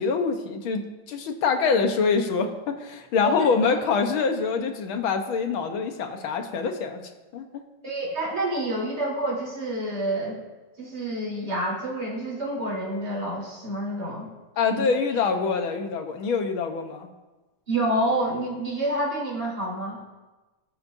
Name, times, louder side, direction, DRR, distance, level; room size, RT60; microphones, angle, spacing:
voice 1, 0.0-7.0 7.3-7.5 14.6-17.1, left 5 dB, 80° left, 5 dB, 1.9 m, -25 dB
voice 2, 3.2-3.7 7.8-10.4 10.8-14.3 14.7-14.9 17.7-20.0, right 1 dB, 50° right, -4 dB, 4.4 m, -28 dB
21.5 x 9.0 x 2.7 m, 1.2 s
omnidirectional pair, 2.2 m